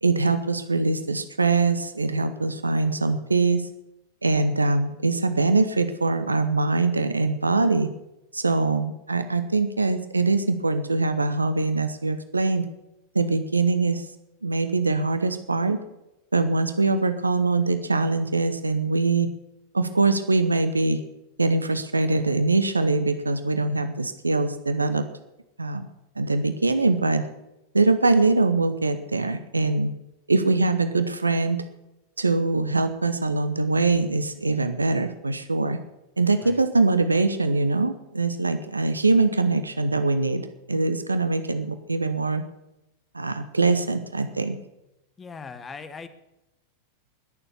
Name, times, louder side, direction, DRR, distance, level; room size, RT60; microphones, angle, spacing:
voice 1, 0.0-3.6 4.2-7.9 8.3-12.7 13.1-14.1 14.4-15.8 16.3-19.3 19.7-21.0 21.4-25.1 25.6-25.9 26.2-27.3 27.7-29.9 30.3-31.6 32.2-35.8 36.2-42.4 43.1-44.6, right 3 dB, 80° right, 10 dB, 0.9 m, -23 dB
voice 2, 45.2-46.1, left 5 dB, 20° left, 12 dB, 1.3 m, -39 dB
20.5 x 7.0 x 7.1 m, 0.92 s
figure-of-eight pair, 90°, 0 cm